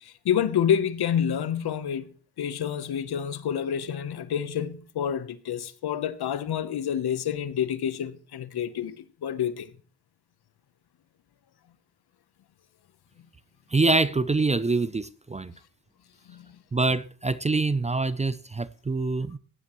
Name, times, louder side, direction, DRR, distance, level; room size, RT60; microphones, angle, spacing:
voice 1, 0.0-2.1 2.4-9.7 16.3-16.6, left 9 dB, 70° left, 1.0 m, -28 dB
voice 2, 13.7-15.5 16.7-19.4, right 3 dB, 20° right, 0.4 m, -25 dB
15.5 x 9.8 x 3.1 m
cardioid pair, 70°, 39 cm